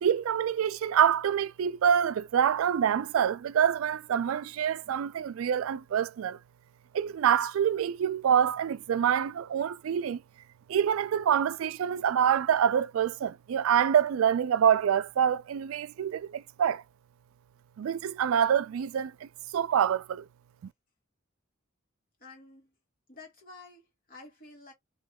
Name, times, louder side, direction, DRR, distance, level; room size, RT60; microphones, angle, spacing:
voice 1, 0.0-6.4 6.9-10.2 10.7-16.8 17.8-20.2, right 8 dB, 85° right, 0.3 m, -26 dB
voice 2, 22.2-22.7 23.1-24.7, left 3 dB, 45° left, 2.1 m, -50 dB
3.1 x 3.0 x 3.5 m
head